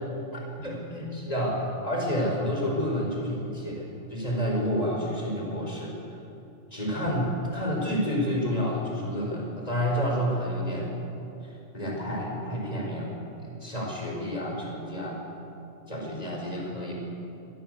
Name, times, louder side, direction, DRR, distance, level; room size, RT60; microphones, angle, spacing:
voice 1, 0.3-6.0 6.7-10.9 11.4-13.1 13.6-15.2 15.9-16.9, equal, 30° left, -1 dB, 5.5 m, -29 dB
24.5 x 17.5 x 8.2 m, 2.8 s
omnidirectional pair, 1.3 m